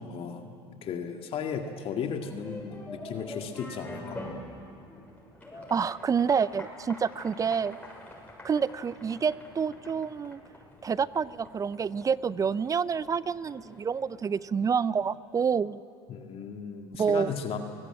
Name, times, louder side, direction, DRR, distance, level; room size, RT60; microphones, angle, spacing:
voice 1, 0.0-4.2 16.1-17.6, left 6 dB, 45° left, 4 dB, 2.1 m, -35 dB
sound 1, 2.2-14.9, left 1 dB, 10° left, 7.1 m, -46 dB
voice 2, 5.6-7.8 8.4-10.4 10.8-15.8 17.0-17.3, right 6 dB, 25° right, 19 dB, 0.6 m, -28 dB
23.0 x 19.0 x 9.1 m, 2.5 s
hypercardioid pair, 75°, 13 cm